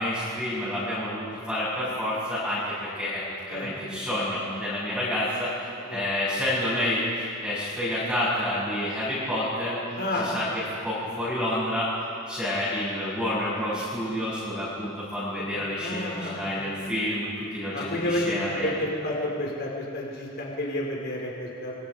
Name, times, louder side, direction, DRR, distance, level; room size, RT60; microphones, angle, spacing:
voice 1, 0.0-7.0 7.4-9.8 10.1-11.9 12.3-18.7, left 1 dB, 5° right, -12 dB, 7.2 m, -29 dB
voice 2, 10.0-10.3 15.4-15.5 15.8-16.5 17.7-21.7, left 1 dB, 50° left, -2 dB, 4.9 m, -30 dB
28.0 x 24.5 x 5.1 m, 2.5 s
head